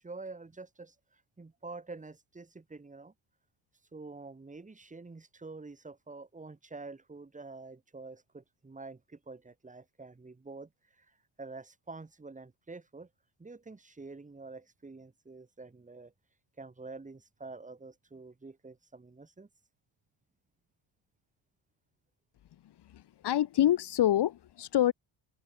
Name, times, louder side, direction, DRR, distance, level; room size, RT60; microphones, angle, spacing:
voice 1, 0.0-3.1 3.9-13.1 13.4-16.1 16.6-19.5, right 3 dB, 15° right, 5.4 m, -47 dB
voice 2, 22.8-24.9, left 12 dB, 55° left, 2.4 m, -27 dB
cardioid pair, 150°, 49 cm